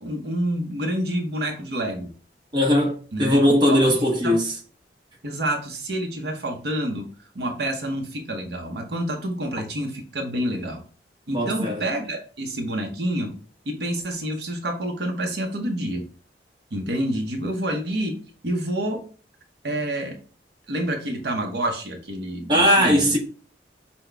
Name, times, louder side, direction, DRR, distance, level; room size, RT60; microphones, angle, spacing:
voice 1, 0.0-2.1 3.1-3.4 3.7-4.3 5.2-10.8 11.3-13.4 13.6-16.0 16.7-18.2 18.4-19.0 19.6-20.2 20.7-23.0, right 1 dB, 65° right, 0.8 m, -28 dB
voice 2, 2.5-4.5 11.3-11.8 22.5-23.2, equal, 25° right, 0.9 m, -19 dB
5.8 x 2.2 x 3.3 m
head